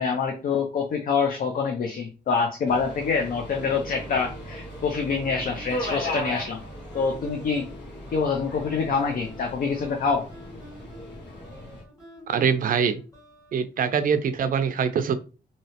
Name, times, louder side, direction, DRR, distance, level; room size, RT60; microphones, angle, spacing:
voice 1, 0.0-6.6 6.9-7.7 8.1-10.3, left 5 dB, 50° left, 0.5 m, -26 dB
Subway metro underground, 2.7-11.8, left 1 dB, 75° left, 1.4 m, -37 dB
sound 1, 3.5-13.6, equal, 20° left, 1.7 m, -48 dB
voice 2, 12.3-13.0 13.5-15.1, right 7 dB, 50° right, 0.4 m, -23 dB
3.1 x 2.7 x 2.8 m
wide cardioid pair, 150°, 19 cm